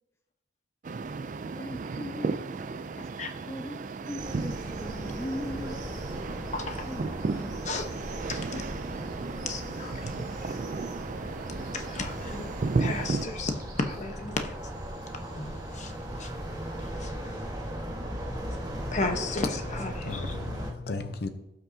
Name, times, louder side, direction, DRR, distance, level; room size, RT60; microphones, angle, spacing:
sound 1, 0.8-13.3, right 4 dB, 45° right, 0.4 m, -34 dB
voice 1, 1.5-2.5 3.4-5.8 6.8-7.7 8.8-9.3, left 1 dB, 15° left, 0.5 m, -40 dB
sound 2, 4.2-20.7, equal, 20° right, 1.5 m, -38 dB
voice 2, 8.3-8.6 9.5-10.2 11.7-12.5 12.8-13.5 13.8-14.5 15.4-15.9 16.2-16.3 17.0-17.1 18.9-20.2, left 3 dB, 40° left, 1.0 m, -33 dB
voice 3, 18.8-19.2 19.9-21.3, left 3 dB, 60° left, 0.6 m, -36 dB
17.0 x 5.9 x 2.7 m
head